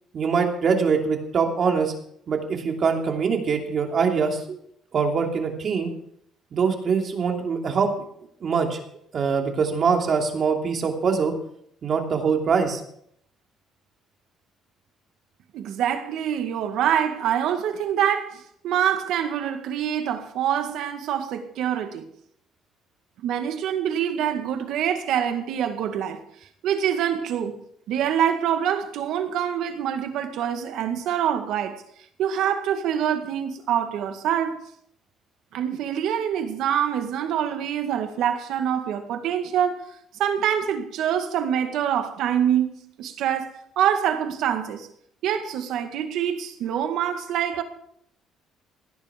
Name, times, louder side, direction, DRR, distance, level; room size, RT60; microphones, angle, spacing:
voice 1, 0.1-1.9 2.3-4.4 4.9-5.9 6.5-7.9 8.4-8.8 9.1-11.3 11.8-12.8, right 5 dB, 45° right, 2.8 m, -23 dB
voice 2, 15.5-22.1 23.2-26.2 26.6-27.6 27.9-31.8 32.2-34.6 35.5-39.9 40.2-44.9 45.2-47.6, right 9 dB, 75° right, 1.9 m, -25 dB
17.0 x 10.0 x 5.2 m
cardioid pair, 125°, 0 cm